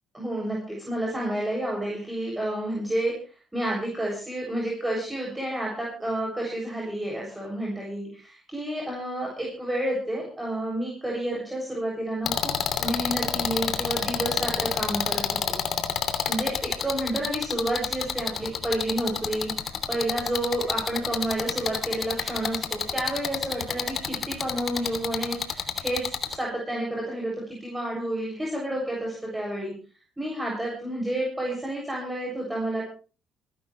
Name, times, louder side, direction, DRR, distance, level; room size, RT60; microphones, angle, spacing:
voice 1, 0.1-3.1 3.5-12.5 12.8-15.6 16.3-19.5 19.9-26.1 26.3-29.7 30.2-32.8, right 1 dB, 15° right, -2 dB, 7.1 m, -30 dB
sound 1, 12.3-26.4, left 8 dB, 60° left, 2.9 m, -28 dB
27.5 x 12.0 x 3.3 m, 0.37 s
hypercardioid pair, 55°, 0 cm